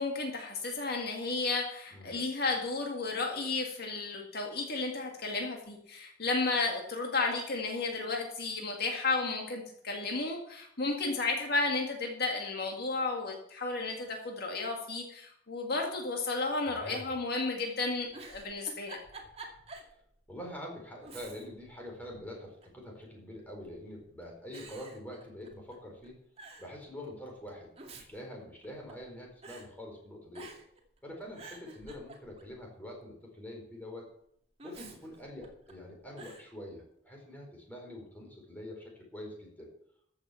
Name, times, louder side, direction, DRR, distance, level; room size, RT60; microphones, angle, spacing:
voice 1, 0.0-19.0, left 3 dB, 55° left, 1 dB, 2.0 m, -33 dB
voice 2, 16.6-17.1 20.3-26.2 26.6-30.5 31.0-34.1 34.6-39.7, left 1 dB, 10° left, -1 dB, 4.4 m, -45 dB
Giggle, 18.0-19.9 20.3-20.4 21.0-21.7 22.0-22.8 23.6-24.0 24.5-25.8 26.0-26.1 26.4-26.7 27.5-29.1 29.4-29.7 30.3-30.8 31.2-32.6 34.6-35.7 36.2-36.5, right 3 dB, 35° right, 2.3 m, -49 dB
14.0 x 7.2 x 7.1 m, 0.68 s
head